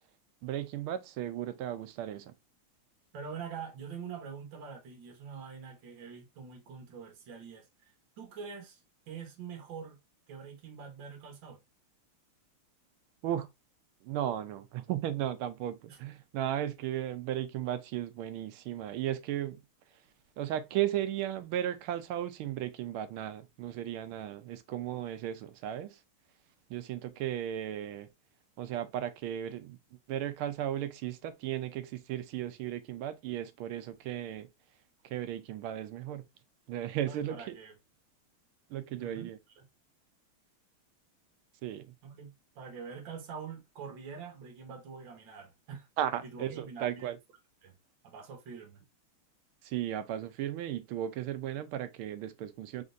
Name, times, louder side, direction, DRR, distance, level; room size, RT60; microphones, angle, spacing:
voice 1, 0.4-2.3 13.2-13.5 14.0-19.6 20.4-26.0 26.7-28.1 28.6-29.8 30.1-34.5 35.0-36.2 36.7-37.6 38.7-39.4 41.6-41.9 46.0-47.2 49.6-52.8, right 11 dB, 80° right, 1.4 m, -35 dB
voice 2, 3.1-7.9 8.2-8.8 9.1-10.0 10.3-11.6 15.9-16.0 37.0-37.7 39.0-39.3 39.6-39.7 42.0-45.9 46.2-47.1 47.6-47.7 48.0-48.8, right 6 dB, 65° right, 1.9 m, -45 dB
4.4 x 3.7 x 2.5 m
omnidirectional pair, 2.4 m